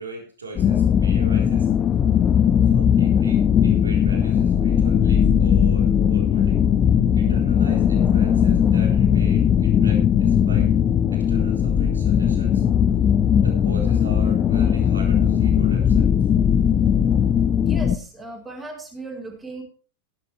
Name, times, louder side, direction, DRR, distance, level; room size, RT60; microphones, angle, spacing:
voice 1, 0.0-1.7 2.7-6.6 7.2-10.7 11.1-12.6 13.4-16.3, right 2 dB, 75° right, 0 dB, 4.0 m, -38 dB
sound 1, 0.5-18.0, left 8 dB, 25° left, 0.6 m, -18 dB
voice 2, 17.6-19.6, right 2 dB, 10° right, -3 dB, 3.9 m, -36 dB
16.0 x 11.0 x 3.4 m, 0.38 s
figure-of-eight pair, 90°, 0 cm